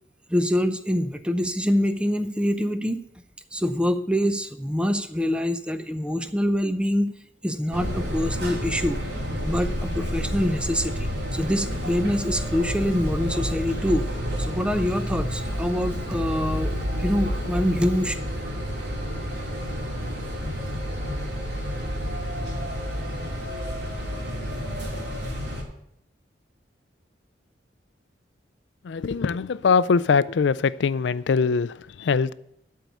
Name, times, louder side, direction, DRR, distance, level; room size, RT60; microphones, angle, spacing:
voice 1, 0.3-3.0 3.5-7.1 7.4-9.0 9.4-14.1 14.4-16.7 17.0-18.2, equal, 5° right, 9 dB, 0.6 m, -25 dB
sound 1, 7.7-25.6, equal, 65° right, 2.7 m, -30 dB
voice 2, 28.8-32.3, left 5 dB, 75° left, 17 dB, 0.4 m, -22 dB
12.0 x 4.7 x 8.2 m, 0.73 s
head